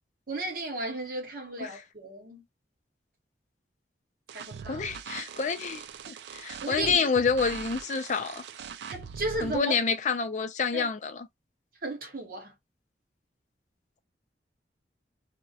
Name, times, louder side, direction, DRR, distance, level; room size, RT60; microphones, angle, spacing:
voice 1, 0.3-2.4 4.3-4.9 6.6-7.2 8.9-9.7 10.7-10.9 11.8-12.5, right 2 dB, 55° right, 0.8 m, -34 dB
sound 1, 4.3-9.6, right 7 dB, 70° right, 0.3 m, -42 dB
voice 2, 4.7-8.4 9.4-11.3, left 5 dB, 40° left, 0.3 m, -28 dB
2.4 x 2.1 x 2.7 m
head